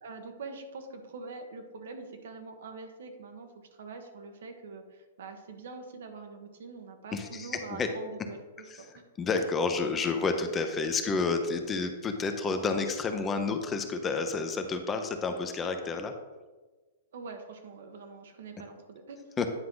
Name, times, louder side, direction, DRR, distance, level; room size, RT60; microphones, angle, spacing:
voice 1, 0.0-3.5 3.8-9.0 17.1-19.5, right 4 dB, 75° right, 5 dB, 1.3 m, -44 dB
voice 2, 7.1-7.9 8.7-8.8 9.2-16.1 19.4-19.5, left 4 dB, 20° left, 6 dB, 0.7 m, -30 dB
9.7 x 4.6 x 3.9 m, 1.3 s
hypercardioid pair, 135°, 0 cm